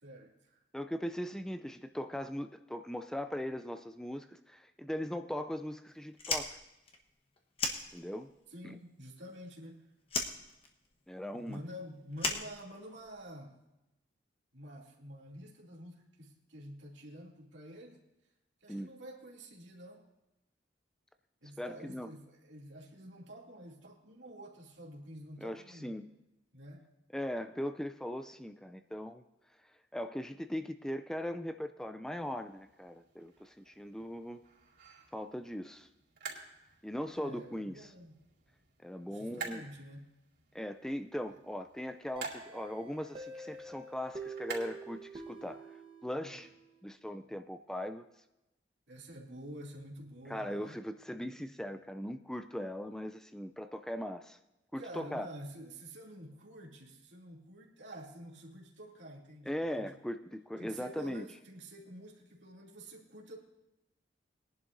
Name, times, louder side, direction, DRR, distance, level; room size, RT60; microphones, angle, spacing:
voice 1, 0.0-0.6 8.5-9.8 11.3-13.6 14.5-18.1 18.6-20.1 21.4-25.9 26.5-26.9 37.1-38.1 39.0-40.1 41.3-41.4 46.2-46.5 48.9-50.8 54.8-60.0 60.6-63.4, equal, 85° right, -2 dB, 2.6 m, -49 dB
voice 2, 0.7-6.6 7.9-8.3 8.6-8.8 11.1-11.6 18.7-18.9 21.6-22.1 25.4-26.1 27.1-29.2 29.9-34.4 35.1-35.9 36.8-37.9 38.8-39.6 40.5-46.5 46.8-48.1 50.3-54.4 54.7-55.3 59.5-61.2, equal, 5° left, 9 dB, 0.3 m, -39 dB
Fire, 6.1-8.4 8.7-9.7 10.1-13.2, left 3 dB, 30° left, 1.1 m, -37 dB
sound 1, 32.3-45.5, right 5 dB, 65° right, 4.1 m, -50 dB
sound 2, 42.2-46.8, right 3 dB, 30° right, 1.1 m, -47 dB
21.0 x 11.0 x 2.6 m, 0.95 s
head